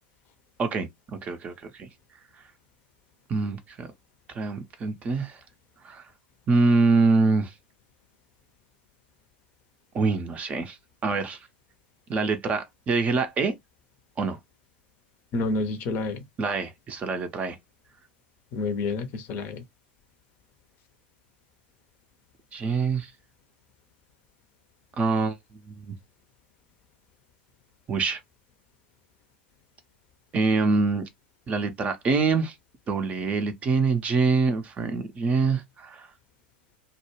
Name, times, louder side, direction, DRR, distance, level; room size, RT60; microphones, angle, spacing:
voice 1, 1.2-1.9 3.3-3.9 4.3-5.4 5.8-6.0 6.5-7.5 9.9-10.8 11.0-11.4 12.1-13.5 14.2-14.4 16.4-17.6 22.5-23.1 25.0-25.4 25.7-25.9 27.9-28.2 30.3-31.0 31.5-32.5 32.9-36.1, right 4 dB, 25° right, 0.5 m, -25 dB
voice 2, 15.3-16.2 18.5-19.6, left 3 dB, 40° left, 0.6 m, -29 dB
2.2 x 2.1 x 3.0 m
figure-of-eight pair, 85°, 5 cm